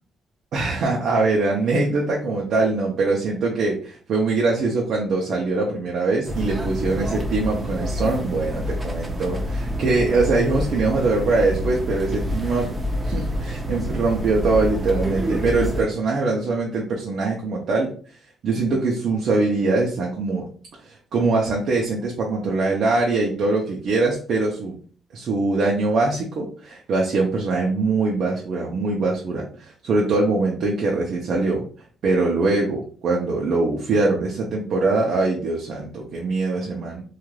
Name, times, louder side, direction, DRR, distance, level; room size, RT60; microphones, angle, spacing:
voice 1, 0.5-12.7 13.0-17.9 18.4-20.4 20.8-24.7 25.1-31.6 32.0-37.0, right 3 dB, 70° right, -2 dB, 0.6 m, -22 dB
sound 1, 6.3-15.8, equal, 20° right, 0.6 m, -27 dB
3.2 x 2.4 x 2.3 m, 0.42 s
cardioid pair, 90°, 0 cm